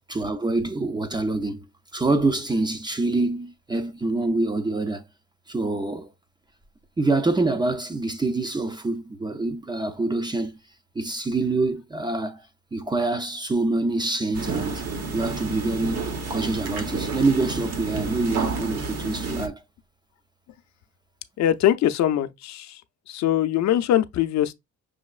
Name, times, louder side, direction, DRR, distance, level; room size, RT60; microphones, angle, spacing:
voice 1, 0.1-1.6 1.9-5.0 5.5-6.1 7.0-10.5 11.0-12.4 12.7-14.8 15.1-19.6, right 2 dB, 15° right, 0.5 m, -26 dB
sound 1, 14.3-19.5, right 4 dB, 55° right, 1.1 m, -30 dB
voice 2, 21.4-22.8 23.1-24.5, left 11 dB, 65° left, 0.6 m, -22 dB
6.2 x 3.0 x 2.4 m
cardioid pair, 125°, 30 cm